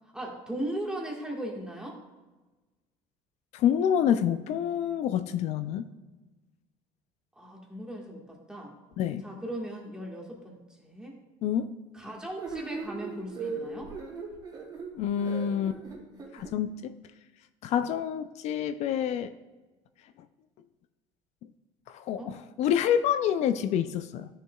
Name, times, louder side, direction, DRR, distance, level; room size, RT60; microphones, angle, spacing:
voice 1, 0.1-2.0 7.4-8.7 9.2-11.2 11.9-13.9 22.2-22.3, right 1 dB, 5° right, -1 dB, 1.6 m, -38 dB
voice 2, 3.5-5.9 9.0-9.3 11.4-11.7 15.0-15.8 16.3-16.9 17.6-19.3 21.9-24.3, left 9 dB, 55° left, 11 dB, 0.4 m, -27 dB
sound 1, 12.4-16.5, right 4 dB, 35° right, 2.3 m, -38 dB
12.0 x 6.6 x 2.3 m, 1.2 s
cardioid pair, 125°, 13 cm